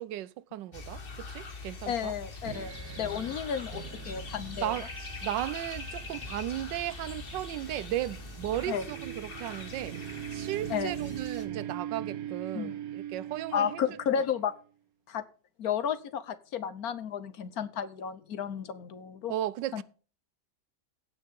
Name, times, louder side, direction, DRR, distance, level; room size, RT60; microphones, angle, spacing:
voice 1, 0.0-2.1 3.0-3.3 4.6-4.9 5.2-10.0 10.3-14.0 19.3-19.8, right 13 dB, 85° right, 1.3 m, -35 dB
sound 1, 0.7-11.5, left 3 dB, 35° left, 1.4 m, -43 dB
voice 2, 1.9-4.7 8.7-8.8 10.7-10.9 12.5-12.7 13.5-14.5 15.1-15.2 15.6-19.3 19.7-19.8, left 8 dB, 60° left, 1.3 m, -32 dB
sound 2, 2.5-14.5, right 11 dB, 65° right, 1.1 m, -42 dB
16.5 x 6.2 x 3.6 m
omnidirectional pair, 1.9 m